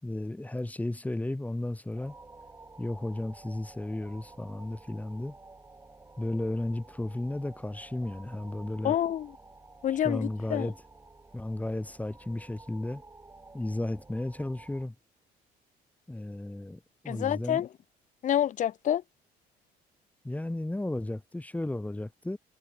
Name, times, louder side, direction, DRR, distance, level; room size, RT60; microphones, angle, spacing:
voice 1, 0.0-2.2 2.8-5.4 6.2-9.0 9.9-10.8 11.3-13.0 13.5-15.0 16.1-17.6 20.2-22.4, left 1 dB, 10° left, 5.6 m, -34 dB
sound 1, 1.9-14.9, right 3 dB, 15° right, 7.4 m, -52 dB
voice 2, 8.8-9.3 9.8-10.7 17.1-17.7 18.2-19.0, left 10 dB, 50° left, 0.7 m, -28 dB
cardioid pair, 110°, 17 cm